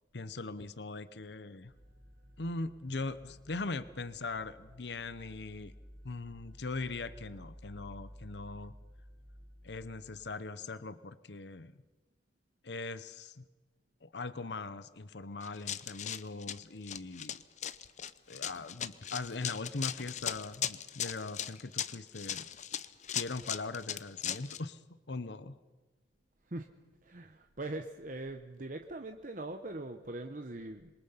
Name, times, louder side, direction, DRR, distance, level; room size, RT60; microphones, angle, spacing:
voice 1, 0.1-1.7 2.4-5.7 6.0-8.7 9.6-11.7 12.6-13.5 14.0-17.4 18.3-22.5 23.1-24.8 25.1-25.5, left 3 dB, 70° left, 14 dB, 0.9 m, -40 dB
sound 1, 1.7-10.2, equal, 60° right, 4.4 m, -54 dB
Run, 15.4-24.6, left 10 dB, 40° left, 0.7 m, -38 dB
voice 2, 27.0-30.9, right 2 dB, 45° right, 6 dB, 1.0 m, -41 dB
27.0 x 23.0 x 5.7 m, 1.3 s
head